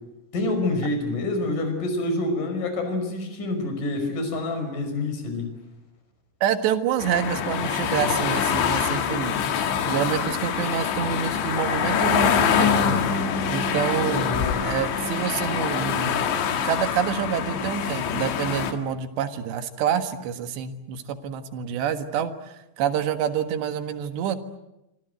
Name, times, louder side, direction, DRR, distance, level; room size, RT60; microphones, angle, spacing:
voice 1, 0.3-5.5 14.1-14.6, left 2 dB, 45° left, 6 dB, 6.7 m, -27 dB
voice 2, 6.4-13.0 13.5-14.3 14.6-16.3 16.6-24.4, right 8 dB, 70° right, 8 dB, 3.7 m, -27 dB
sound 1, 7.0-18.7, left 7 dB, 75° left, 4.0 m, -25 dB
26.5 x 25.5 x 7.9 m, 0.92 s
omnidirectional pair, 5.3 m